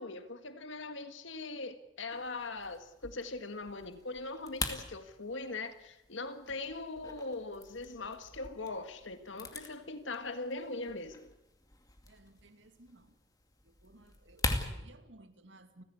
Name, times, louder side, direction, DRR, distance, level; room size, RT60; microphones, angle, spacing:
voice 1, 0.0-11.3, left 3 dB, 80° left, 1.8 m, -41 dB
sound 1, 2.1-14.7, left 2 dB, 20° left, 2.4 m, -43 dB
voice 2, 12.1-13.1 13.6-15.8, right 1 dB, 75° right, 2.5 m, -58 dB
29.5 x 15.5 x 8.4 m
head